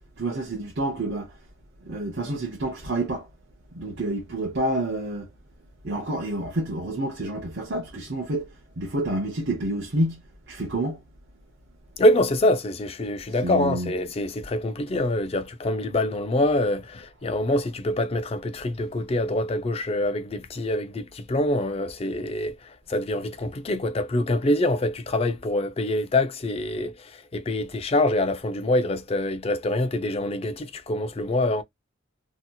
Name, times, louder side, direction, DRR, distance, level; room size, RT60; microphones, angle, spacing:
voice 1, 0.2-1.3 1.8-3.3 3.7-5.3 5.8-8.5 8.8-10.2 10.5-11.0 13.4-13.9, right 1 dB, 55° right, 0.7 m, -28 dB
voice 2, 12.0-31.6, left 1 dB, 30° left, 0.3 m, -25 dB
2.8 x 2.7 x 2.2 m
head